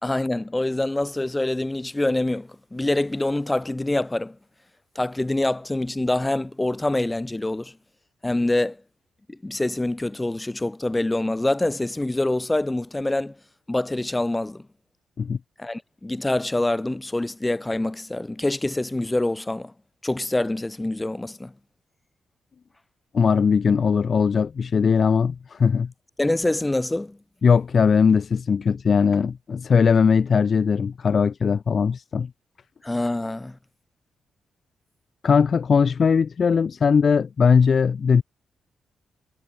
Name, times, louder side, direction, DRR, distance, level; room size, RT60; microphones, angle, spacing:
voice 1, 0.0-4.4 5.0-7.7 8.2-8.8 9.3-13.3 13.7-14.6 15.6-19.7 20.0-21.5 26.2-27.2 32.8-33.6, left 2 dB, 15° left, 4.3 m, -25 dB
voice 2, 23.1-25.9 27.4-32.3 35.2-38.2, left 6 dB, 50° left, 0.4 m, -19 dB
supercardioid pair, 60°, 0 cm